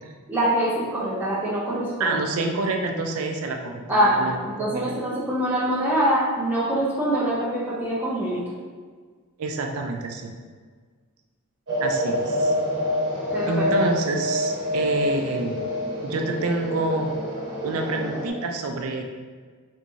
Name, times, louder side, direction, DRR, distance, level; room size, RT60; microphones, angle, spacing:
voice 1, 0.3-2.2 3.9-8.4 13.3-13.7, right 1 dB, 10° right, -9 dB, 0.5 m, -24 dB
voice 2, 2.0-4.9 9.4-10.3 11.8-12.5 13.4-15.7 16.0-17.1 17.6-19.0, right 2 dB, 70° right, 3 dB, 0.4 m, -27 dB
sound 1, 11.7-18.3, equal, 50° right, 1.1 m, -27 dB
3.4 x 3.1 x 2.6 m, 1.5 s
head